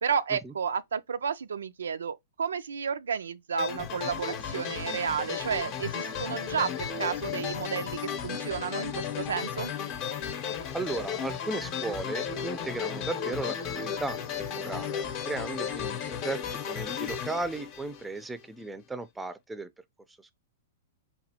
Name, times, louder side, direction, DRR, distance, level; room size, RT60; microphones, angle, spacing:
voice 1, 0.0-9.7, right 6 dB, 90° right, 0.3 m, -32 dB
sound 1, 3.6-18.4, left 8 dB, 40° left, 0.7 m, -34 dB
voice 2, 10.7-19.7 20.2-20.3, right 3 dB, 10° right, 0.4 m, -36 dB
4.1 x 2.2 x 2.7 m
hypercardioid pair, 130°, 0 cm